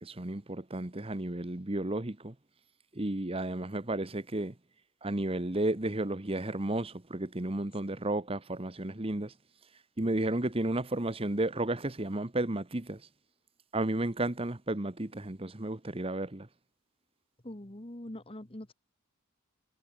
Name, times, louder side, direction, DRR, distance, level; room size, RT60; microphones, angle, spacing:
voice 1, 0.0-2.3 2.9-4.5 5.0-9.3 10.0-13.0 13.7-16.5, right 1 dB, 25° right, 1.2 m, -33 dB
voice 2, 17.4-18.7, left 1 dB, 25° left, 1.5 m, -43 dB
head